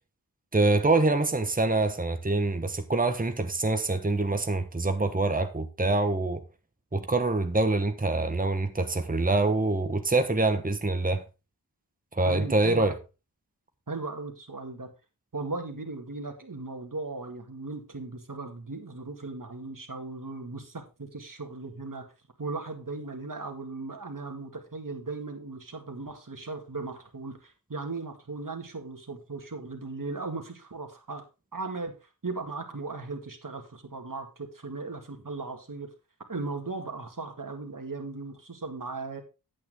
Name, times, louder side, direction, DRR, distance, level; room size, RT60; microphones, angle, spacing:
voice 1, 0.5-6.4 6.9-11.2 12.1-12.9, right 2 dB, 20° right, 1.2 m, -25 dB
voice 2, 12.3-12.9 13.9-14.9 15.3-22.0 22.4-31.2 31.5-31.9 32.2-35.9 36.3-39.2, right 3 dB, 55° right, 2.1 m, -37 dB
8.9 x 8.7 x 3.6 m
wide cardioid pair, 50°, 39 cm